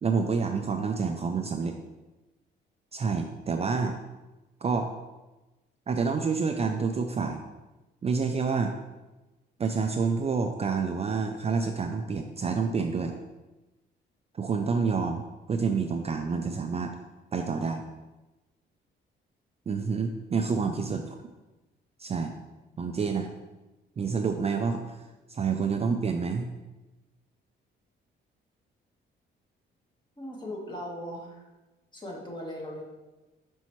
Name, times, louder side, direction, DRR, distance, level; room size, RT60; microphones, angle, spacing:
voice 1, 0.0-1.8 2.9-4.0 4.6-4.9 5.9-7.4 8.0-8.7 9.6-13.2 14.4-15.2 15.5-16.9 17.3-17.8 19.7-21.0 22.0-22.3 22.8-23.3 24.0-24.8 25.3-26.5, right 5 dB, 30° right, 4 dB, 0.4 m, -28 dB
voice 2, 20.6-20.9 30.2-31.4 31.9-32.8, left 1 dB, 25° left, -1 dB, 1.5 m, -38 dB
5.6 x 5.4 x 3.1 m, 1.1 s
cardioid pair, 90°, 20 cm